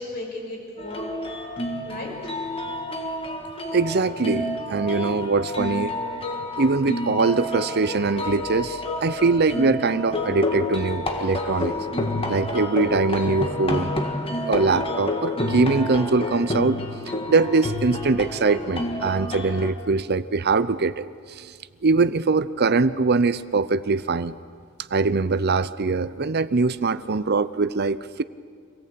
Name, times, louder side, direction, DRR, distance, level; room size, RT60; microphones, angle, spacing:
voice 1, 0.0-1.4 1.9-2.1 2.5-3.1, left 2 dB, 50° left, -1 dB, 5.6 m, -36 dB
sound 1, 0.8-19.7, left 1 dB, 25° left, 1.8 m, -29 dB
voice 2, 3.7-5.9 6.6-11.8 12.3-13.9 14.5-21.5 21.8-24.3 24.9-28.2, right 4 dB, 50° right, 15 dB, 0.7 m, -22 dB
26.0 x 18.5 x 8.6 m, 2.1 s
head